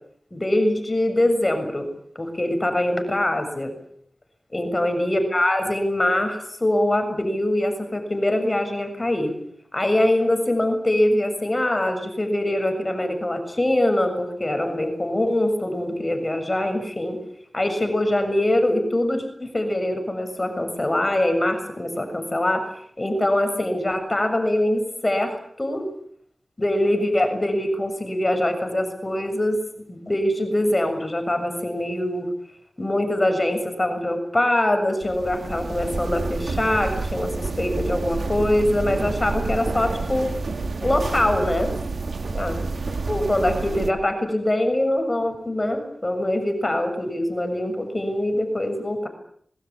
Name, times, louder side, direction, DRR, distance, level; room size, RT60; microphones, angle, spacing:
voice 1, 0.3-1.9 2.2-3.7 4.5-9.3 9.7-17.2 17.5-25.9 26.6-29.6 29.9-32.3 32.8-40.4 40.8-41.7 42.3-42.7 43.1-49.1, left 1 dB, 25° left, 6 dB, 7.0 m, -23 dB
sound 1, 35.0-43.9, right 3 dB, 75° right, 2.3 m, -29 dB
26.0 x 22.0 x 8.8 m, 0.64 s
wide cardioid pair, 75°, 0 cm